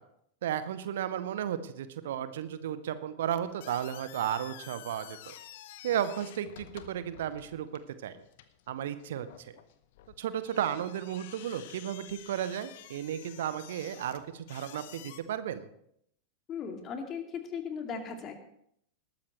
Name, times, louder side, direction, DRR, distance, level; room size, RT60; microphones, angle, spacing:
voice 1, 0.4-5.3 5.8-7.7 8.0-8.2 8.7-9.6 10.2-15.7, right 10 dB, 60° right, 13 dB, 0.8 m, -34 dB
sound 1, 3.3-15.2, left 12 dB, 50° left, 0.9 m, -51 dB
voice 2, 16.5-18.3, left 6 dB, 30° left, 4 dB, 2.3 m, -37 dB
20.0 x 13.0 x 3.1 m, 0.72 s
figure-of-eight pair, 90°, 0 cm